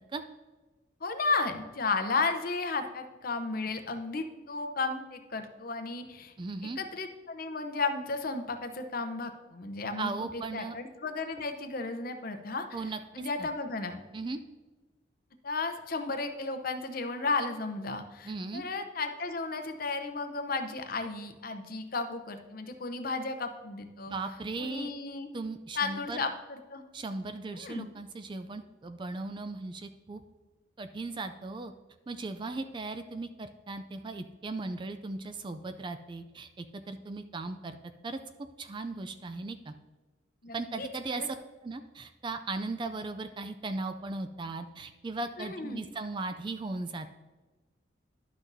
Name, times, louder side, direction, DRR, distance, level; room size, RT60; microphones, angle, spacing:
voice 1, 1.0-6.3 6.8-12.7 13.1-14.0 15.4-24.1 24.6-25.3 25.7-26.8 27.5-27.9 40.4-41.3 45.4-45.8, left 3 dB, 45° left, 7 dB, 0.7 m, -34 dB
voice 2, 6.4-6.8 10.0-10.8 12.7-13.5 14.1-14.4 18.2-18.6 24.1-24.9 25.3-26.2 26.9-30.2 30.8-31.7 32.1-37.8 38.0-38.2 38.6-39.7 40.5-41.4 41.6-47.1, right 3 dB, 25° right, 9 dB, 0.3 m, -37 dB
11.5 x 6.0 x 2.7 m, 1.2 s
head